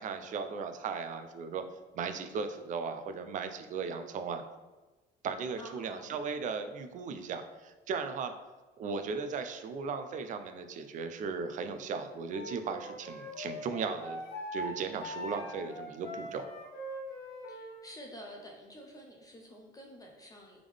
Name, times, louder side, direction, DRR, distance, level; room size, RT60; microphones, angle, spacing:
voice 1, 0.0-1.6 1.9-4.4 5.2-8.3 8.8-14.2 14.5-16.5, right 5 dB, 50° right, 8 dB, 0.4 m, -37 dB
voice 2, 5.6-6.2 17.5-20.6, equal, 20° left, 0 dB, 0.5 m, -49 dB
Wind instrument woodwind instrument, 12.3-17.8, left 1 dB, 75° left, 1.1 m, -42 dB
3.6 x 3.5 x 3.4 m, 1.2 s
cardioid pair, 110°, 17 cm